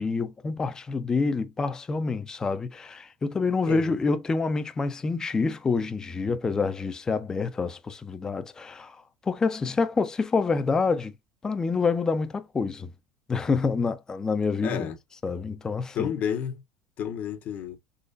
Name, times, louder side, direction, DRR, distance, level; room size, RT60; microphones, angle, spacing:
voice 1, 0.0-9.0 9.2-11.1 11.4-12.9 13.3-14.9 15.2-16.1, left 4 dB, 20° left, 0.5 m, -27 dB
voice 2, 14.6-15.0 15.9-16.6 17.0-17.8, left 8 dB, 50° left, 0.8 m, -30 dB
3.9 x 3.0 x 2.4 m
supercardioid pair, 115°, 4 cm